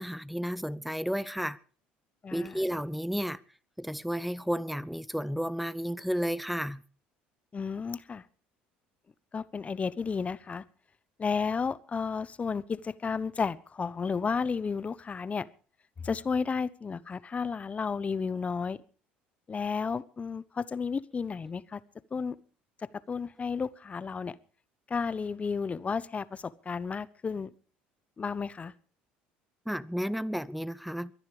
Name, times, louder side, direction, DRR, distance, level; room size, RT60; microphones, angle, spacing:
voice 1, 0.0-1.6 2.3-3.4 3.8-6.8 29.7-31.1, equal, ahead, 0.8 m, -32 dB
voice 2, 2.2-2.6 7.5-8.2 9.3-10.6 11.2-15.5 16.0-18.8 19.5-21.8 22.1-22.4 23.1-24.4 24.9-27.5 28.2-28.7, left 5 dB, 30° left, 1.0 m, -32 dB
23.0 x 10.5 x 5.0 m
hypercardioid pair, 75°, 5 cm